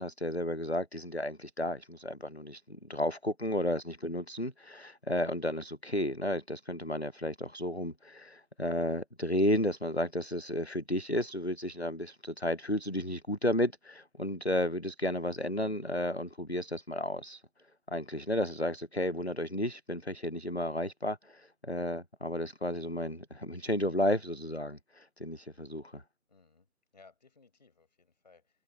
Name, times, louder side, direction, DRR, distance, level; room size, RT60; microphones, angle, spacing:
voice 1, 0.0-17.4 17.9-26.0, left 1 dB, 45° left, 0.5 m, -33 dB
voice 2, 26.3-28.6, left 4 dB, 25° left, 4.7 m, -61 dB
figure-of-eight pair, 180°, 47 cm